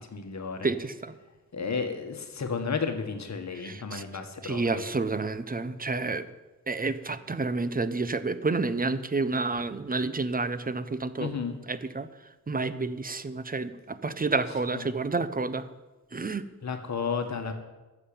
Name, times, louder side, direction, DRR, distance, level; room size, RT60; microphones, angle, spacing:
voice 1, 0.1-0.7 1.5-4.8 11.2-11.5 14.7-14.9 16.6-17.5, left 5 dB, 50° left, 6 dB, 1.7 m, -32 dB
voice 2, 0.6-1.1 3.5-4.0 4.4-6.3 6.7-11.3 11.7-12.1 12.5-15.7 16.1-16.4, right 3 dB, 25° right, 13 dB, 0.9 m, -29 dB
12.5 x 7.5 x 8.8 m, 1.2 s
cardioid pair, 80°, 36 cm